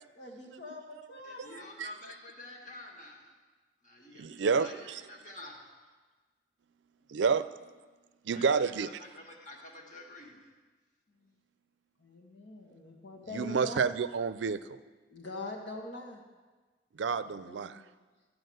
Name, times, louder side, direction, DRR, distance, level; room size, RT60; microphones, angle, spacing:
voice 1, 0.1-1.7 7.1-7.4 11.2-11.3 12.0-13.8 15.1-16.2 17.2-17.9, left 2 dB, 80° left, 0 dB, 1.8 m, -44 dB
voice 2, 1.2-3.3 3.8-4.8 5.1-5.7 8.3-8.6 9.0-10.4, left 1 dB, 45° left, 0 dB, 1.8 m, -48 dB
voice 3, 4.2-5.0 7.1-7.7 8.3-9.0 13.3-14.6 17.0-17.8, right 5 dB, 90° right, 14 dB, 0.4 m, -29 dB
13.0 x 4.8 x 7.8 m, 1.3 s
head